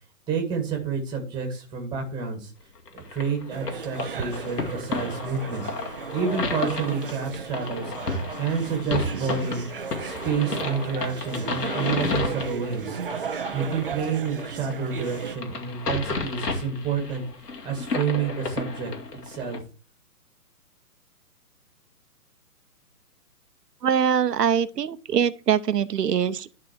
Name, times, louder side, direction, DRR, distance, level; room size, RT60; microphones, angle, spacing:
voice 1, 0.3-2.5 2.9-5.6 6.1-7.9 8.4-9.6 10.0-13.0 13.5-17.2 17.6-18.9 19.2-19.6, right 5 dB, 10° right, 1.7 m, -29 dB
sound 1, 2.9-19.6, left 3 dB, 75° left, 2.5 m, -33 dB
sound 2, 3.5-15.4, right 6 dB, 40° right, 0.4 m, -35 dB
voice 2, 23.8-26.5, right 8 dB, 85° right, 0.8 m, -23 dB
11.0 x 4.2 x 4.5 m
hypercardioid pair, 150°, 47 cm